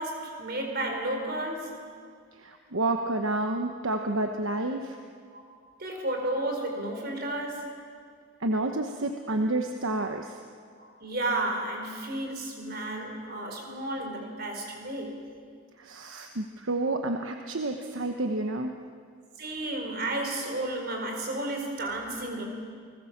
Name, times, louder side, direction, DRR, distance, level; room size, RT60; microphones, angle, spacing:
voice 1, 0.0-1.9 5.3-5.4 5.8-7.7 10.8-15.2 19.4-22.4, right 1 dB, 45° right, 3 dB, 4.4 m, -32 dB
voice 2, 2.4-5.0 8.4-10.3 15.8-18.8, right 2 dB, 70° right, 4 dB, 1.2 m, -29 dB
29.5 x 19.5 x 7.4 m, 2.1 s
head